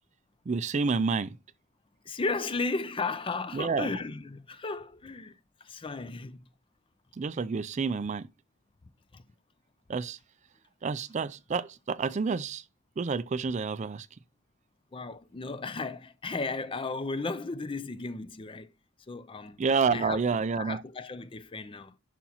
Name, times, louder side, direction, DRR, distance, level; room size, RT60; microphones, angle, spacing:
voice 1, 0.5-1.4 3.5-3.9 7.2-8.3 9.9-10.2 10.8-12.6 13.0-14.1 19.6-20.8, right 5 dB, 35° right, 0.4 m, -29 dB
voice 2, 2.0-6.5 9.1-9.2 14.9-18.7 19.1-19.6 19.9-20.2 20.6-21.9, left 3 dB, 25° left, 0.5 m, -35 dB
11.0 x 5.8 x 2.8 m
head